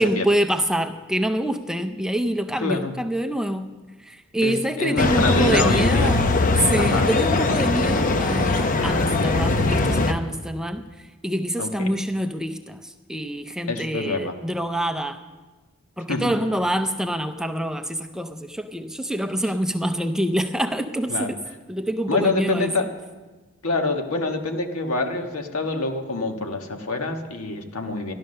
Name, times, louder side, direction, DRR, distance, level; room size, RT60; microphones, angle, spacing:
voice 1, 0.0-3.7 4.0-6.3 6.5-15.2 16.0-21.4 21.7-22.7, equal, 5° right, 7 dB, 0.5 m, -26 dB
voice 2, 2.6-2.9 4.4-6.1 6.8-7.1 11.6-11.9 13.7-14.3 16.1-16.3 21.1-21.3 22.1-22.9 23.6-28.1, left 2 dB, 85° left, 4 dB, 1.5 m, -26 dB
sound 1, 5.0-10.1, left 3 dB, 40° left, 0.7 m, -21 dB
13.5 x 11.5 x 6.6 m, 1.3 s
head